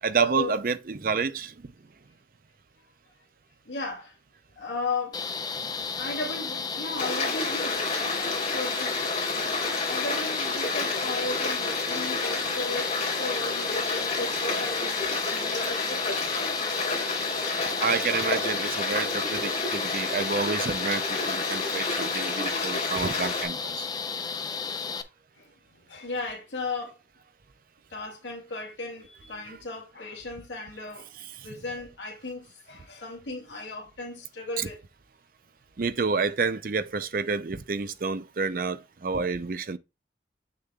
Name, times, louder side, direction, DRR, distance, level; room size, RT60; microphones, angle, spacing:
voice 1, 0.0-1.7 17.8-23.9 29.5-29.6 31.2-31.6 34.6-34.7 35.8-39.8, right 5 dB, 50° right, 0.5 m, -29 dB
voice 2, 3.7-4.2 4.6-5.2 6.0-9.0 9.3-16.9 25.4-25.5 25.8-27.0 27.9-34.8, left 3 dB, 85° left, 2.1 m, -36 dB
sound 1, 5.1-25.0, left 5 dB, 20° left, 0.5 m, -33 dB
Stream, 7.0-23.5, left 3 dB, 40° left, 3.3 m, -30 dB
7.3 x 6.6 x 2.3 m
head